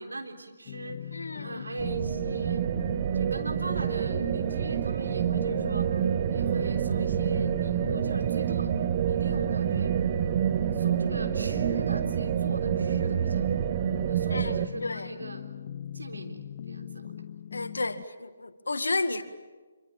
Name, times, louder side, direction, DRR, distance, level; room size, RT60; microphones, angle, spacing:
voice 1, 0.0-2.7 3.1-5.9 6.3-8.7 9.1-9.9 10.7-13.7 14.1-15.4 15.9-17.1, right 2 dB, 75° right, 3.7 m, -41 dB
sound 1, 0.7-18.0, left 9 dB, 40° left, 0.8 m, -41 dB
voice 2, 1.1-1.6 14.3-15.1 17.5-19.2, left 2 dB, 75° left, 2.0 m, -32 dB
sound 2, 1.8-14.7, right 9 dB, 35° right, 1.2 m, -27 dB
26.0 x 24.5 x 8.8 m
figure-of-eight pair, 145°, 0 cm